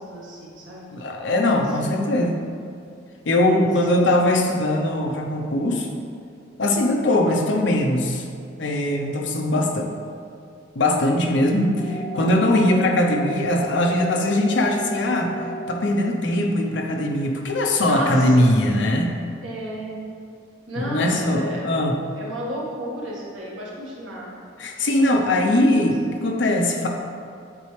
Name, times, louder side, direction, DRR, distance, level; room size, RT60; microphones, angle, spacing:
voice 1, 0.0-0.8 1.3-1.9 3.4-3.7 4.0-4.1 17.9-18.4 19.4-20.0 20.7-21.6 22.1-24.3 24.9-25.2 26.0-26.1, equal, 90° right, -5 dB, 1.6 m, -33 dB
voice 2, 0.9-2.5 3.2-6.0 6.6-8.2 8.6-9.9 10.7-15.3 15.7-19.1 20.8-22.0 24.6-26.9, left 1 dB, 70° left, 2 dB, 0.7 m, -21 dB
sound 1, 11.8-15.8, right 1 dB, 20° left, 0.6 m, -33 dB
8.7 x 4.2 x 3.3 m, 2.3 s
head